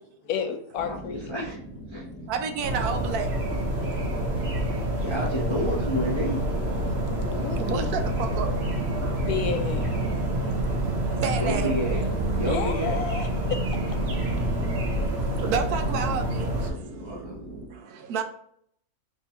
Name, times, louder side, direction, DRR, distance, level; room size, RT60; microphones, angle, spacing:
voice 1, 0.2-1.3 7.3-8.0 9.2-9.9 12.4-13.6, left 7 dB, 80° left, 1.1 m, -31 dB
sound 1, 0.7-17.7, right 1 dB, 10° left, 0.6 m, -41 dB
voice 2, 0.8-1.6 1.9-2.0 5.0-6.4 11.1-13.0 17.0-17.4, equal, 45° left, 0.3 m, -30 dB
voice 3, 2.3-3.4 3.7-4.0 4.5-4.6 6.8-7.2 7.5-9.3 10.1-10.2 10.9-11.8 14.4-17.3 17.7-18.2, right 6 dB, 80° right, 1.1 m, -32 dB
sound 2, 2.6-16.7, right 1 dB, 50° right, 1.0 m, -27 dB
3.7 x 2.7 x 4.2 m
omnidirectional pair, 1.6 m